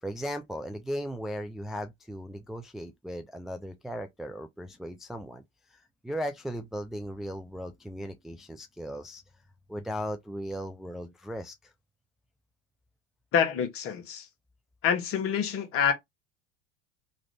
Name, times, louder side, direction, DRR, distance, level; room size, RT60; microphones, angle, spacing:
voice 1, 0.0-5.4 5.7-9.2 9.7-11.7, equal, ahead, 0.4 m, -37 dB
voice 2, 13.3-14.3 14.8-15.9, left 7 dB, 45° left, 1.3 m, -26 dB
3.1 x 2.5 x 3.1 m
hypercardioid pair, 85°, 30 cm